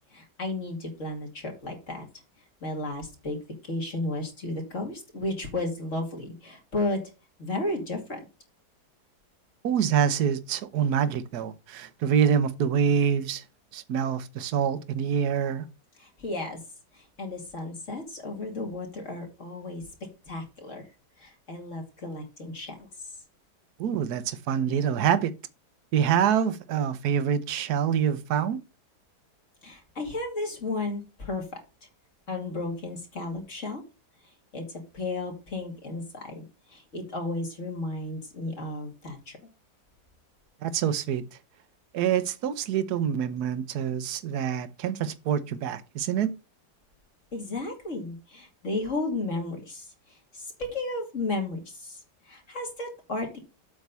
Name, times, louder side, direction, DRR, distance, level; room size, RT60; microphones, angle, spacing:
voice 1, 0.1-2.0 2.6-3.4 3.6-7.0 7.4-8.2 16.0-16.6 16.9-19.9 20.3-20.8 21.2-22.7 29.6-31.4 32.3-33.8 34.5-34.6 34.9-36.4 36.7-39.4 47.3-49.9 50.3-52.0 52.3-53.4, left 2 dB, 45° left, 2.9 m, -33 dB
voice 2, 9.6-13.4 13.7-15.6 23.8-25.3 25.9-28.6 40.6-41.2 41.9-46.3, right 8 dB, 70° right, 1.4 m, -26 dB
8.2 x 3.9 x 6.9 m
omnidirectional pair, 1.8 m